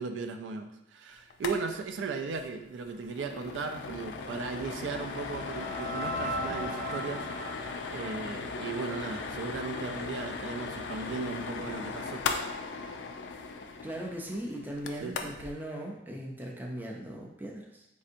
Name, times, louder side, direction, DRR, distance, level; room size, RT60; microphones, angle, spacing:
voice 1, 0.0-12.3 15.0-15.2, right 4 dB, 90° right, 7 dB, 0.3 m, -37 dB
sound 1, 1.3-1.6 1.8-1.9 2.3-2.5 2.8-15.5, left 4 dB, 80° left, 0.3 m, -38 dB
sound 2, 4.1-9.3, equal, 50° right, 0.7 m, -39 dB
voice 2, 13.8-17.9, right 1 dB, 10° right, -1 dB, 0.4 m, -39 dB
4.2 x 2.7 x 2.5 m, 0.86 s
head